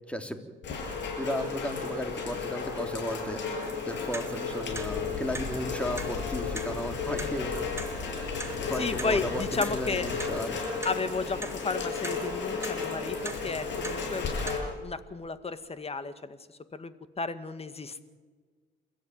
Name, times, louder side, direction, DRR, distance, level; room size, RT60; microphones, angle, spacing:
voice 1, 0.1-0.4 1.2-3.4 3.8-7.6 8.5-10.6, equal, 5° left, 6 dB, 3.2 m, -35 dB
Rain, 0.6-14.6, left 5 dB, 70° left, 7.8 m, -34 dB
Clock, 3.6-14.5, right 2 dB, 15° right, 2.7 m, -43 dB
sound 1, 4.7-10.4, left 6 dB, 85° left, 4.0 m, -41 dB
voice 2, 8.8-10.1 10.8-18.0, left 4 dB, 30° left, 12 dB, 1.9 m, -33 dB
28.5 x 14.5 x 9.4 m, 1.4 s
cardioid pair, 75°, 20 cm